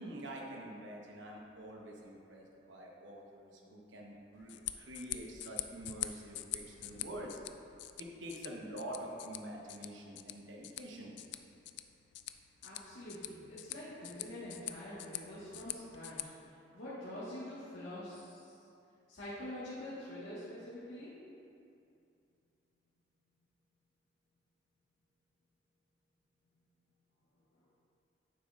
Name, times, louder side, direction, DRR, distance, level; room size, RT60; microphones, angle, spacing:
voice 1, 0.0-4.5 4.8-7.4 8.0-11.2, right 1 dB, 80° right, -1 dB, 1.2 m, -46 dB
sound 1, 4.3-16.2, left 14 dB, 65° left, 0.3 m, -45 dB
voice 2, 12.6-16.2 16.7-18.5 19.1-21.2, left 1 dB, 85° left, -10 dB, 1.6 m, -45 dB
9.3 x 7.3 x 2.5 m, 2.6 s
head